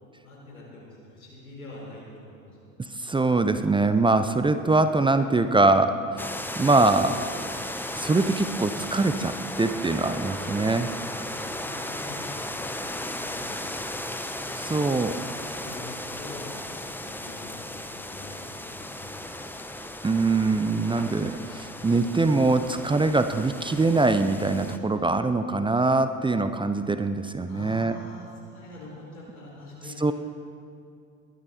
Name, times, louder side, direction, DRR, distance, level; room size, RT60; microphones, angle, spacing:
voice 1, 0.2-2.8 10.2-10.7 11.3-13.9 14.4-14.5 15.6-16.4 16.9-17.6 17.9-18.4 18.8-19.5 27.5-30.1, left 2 dB, 90° left, -5 dB, 4.5 m, -45 dB
voice 2, 2.8-6.3 6.6-7.3 8.0-10.9 14.6-15.1 20.0-28.0 30.0-30.1, right 3 dB, 10° right, 10 dB, 0.7 m, -23 dB
sound 1, 6.2-24.8, left 1 dB, 5° left, 1.1 m, -36 dB
21.0 x 12.0 x 4.3 m, 2.3 s
figure-of-eight pair, 65°, 41 cm